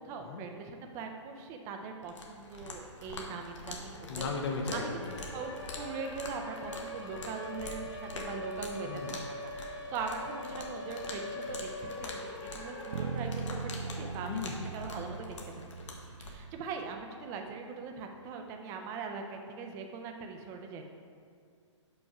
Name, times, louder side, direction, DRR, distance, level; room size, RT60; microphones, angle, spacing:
voice 1, 0.0-4.3 4.7-4.9 5.3-13.3 13.8-15.6 16.2-20.8, right 5 dB, 20° right, 4 dB, 0.5 m, -41 dB
sound 1, 2.0-16.3, left 2 dB, 70° left, 1.2 m, -46 dB
Siren, 3.1-3.2 3.5-15.5, left 1 dB, 30° left, 0.9 m, -43 dB
voice 2, 4.1-5.2 8.8-9.2 14.3-14.7, left 4 dB, 55° left, 3 dB, 0.8 m, -36 dB
sound 2, 12.9-17.0, right 5 dB, 70° right, 0.4 m, -40 dB
5.4 x 4.6 x 5.7 m, 2.2 s
hypercardioid pair, 150°, 16 cm